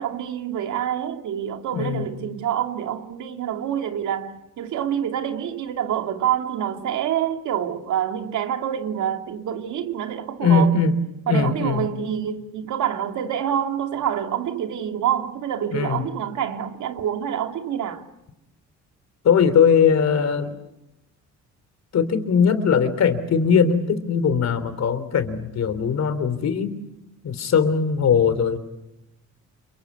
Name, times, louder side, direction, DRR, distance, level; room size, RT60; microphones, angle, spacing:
voice 1, 0.0-10.8 11.3-18.0, right 9 dB, 75° right, 2.7 m, -27 dB
voice 2, 1.7-2.1 10.4-10.9 11.3-11.9 15.7-16.0 19.2-20.6 21.9-26.7 27.2-28.6, left 6 dB, 60° left, 3.4 m, -20 dB
30.0 x 23.5 x 8.4 m
cardioid pair, 90°, 30 cm